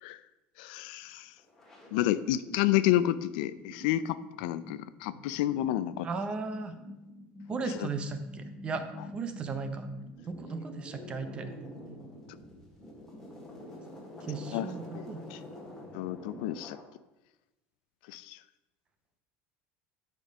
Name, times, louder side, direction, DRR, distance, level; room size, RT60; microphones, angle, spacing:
voice 1, 0.6-1.3 1.9-6.1 7.7-7.9 14.5-15.4 15.9-16.8 18.1-18.4, left 13 dB, 80° left, 15 dB, 0.4 m, -30 dB
sound 1, 1.0-1.1 1.4-16.8, left 1 dB, 10° left, 1.7 m, -47 dB
voice 2, 6.0-6.7 7.5-8.8 9.1-9.8 10.3-11.5 14.3-15.2, right 4 dB, 20° right, 8 dB, 0.6 m, -36 dB
8.7 x 5.2 x 5.1 m, 1.0 s
cardioid pair, 170°, 5 cm